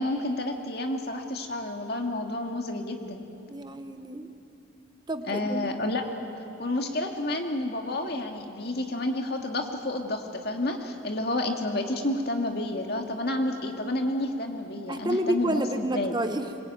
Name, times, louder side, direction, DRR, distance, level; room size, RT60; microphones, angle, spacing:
voice 1, 0.0-3.3 5.3-6.2 6.6-16.1, left 1 dB, 55° left, 3 dB, 2.2 m, -30 dB
voice 2, 3.5-4.3 5.1-5.7 14.9-16.5, right 1 dB, 20° right, 8 dB, 1.0 m, -29 dB
24.5 x 21.5 x 9.2 m, 2.8 s
head